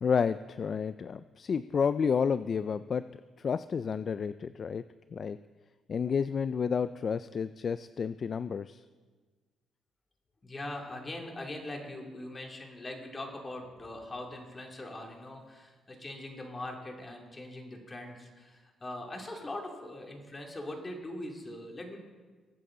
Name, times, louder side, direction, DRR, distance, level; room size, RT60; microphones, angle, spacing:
voice 1, 0.0-3.1 3.4-4.8 5.1-5.4 5.9-8.8, left 6 dB, 45° left, 14 dB, 0.3 m, -30 dB
voice 2, 10.4-22.0, left 1 dB, 25° left, 1 dB, 2.5 m, -41 dB
21.5 x 8.6 x 3.8 m, 1.4 s
cardioid pair, 90°, 0 cm